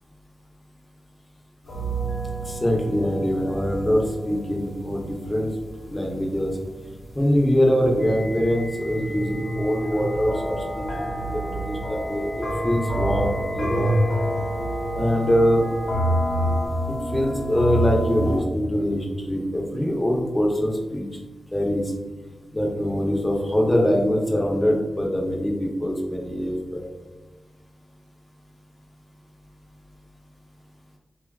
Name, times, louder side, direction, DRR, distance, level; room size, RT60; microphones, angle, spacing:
sound 1, 1.7-6.6 6.9-18.4, equal, 80° left, 0.8 m, -28 dB
voice 1, 2.5-5.5 5.9-6.5 7.1-13.9 14.9-15.7 17.1-21.1 21.5-21.9 22.5-26.9, equal, 20° left, -1 dB, 0.6 m, -23 dB
sound 2, 8.0-16.7, right 1 dB, 25° right, 0.4 m, -36 dB
3.3 x 2.3 x 2.2 m, 1.2 s
cardioid pair, 65°, 0 cm